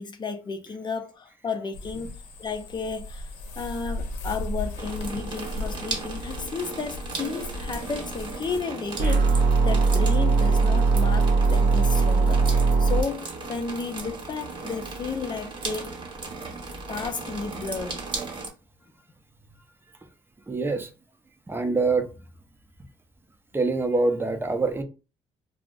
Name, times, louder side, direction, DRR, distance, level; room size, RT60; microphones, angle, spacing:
voice 1, 0.0-2.1 2.4-3.3 3.6-16.0 16.9-18.1, left 5 dB, 35° left, 0.5 m, -33 dB
sound 1, 1.7-8.6, left 2 dB, 85° left, 0.7 m, -36 dB
sound 2, 4.8-18.5, right 3 dB, 35° right, 1.0 m, -36 dB
sound 3, 9.0-13.0, right 4 dB, 60° right, 0.7 m, -20 dB
voice 2, 20.5-20.9 21.5-22.1 23.5-24.8, right 3 dB, 15° right, 0.6 m, -24 dB
2.4 x 2.0 x 3.7 m
supercardioid pair, 80°, 13 cm